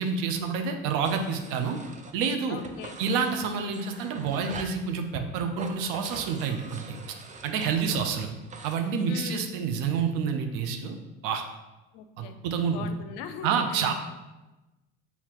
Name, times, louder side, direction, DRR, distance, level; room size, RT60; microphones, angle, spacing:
voice 1, 0.0-1.8 2.1-2.6 3.0-7.2 7.4-8.3 8.6-11.0 11.2-11.4 12.2-12.9 13.4-13.9, right 6 dB, 65° right, 6 dB, 0.7 m, -28 dB
sound 1, 1.0-2.3 2.6-4.8 5.5-8.8, right 4 dB, 20° right, 0.5 m, -43 dB
voice 2, 2.5-3.0 7.9-8.3 9.1-9.6 11.9-12.4 12.7-13.9, left 8 dB, 65° left, 8 dB, 0.5 m, -41 dB
5.7 x 2.8 x 3.0 m, 1.1 s
hypercardioid pair, 70°, 36 cm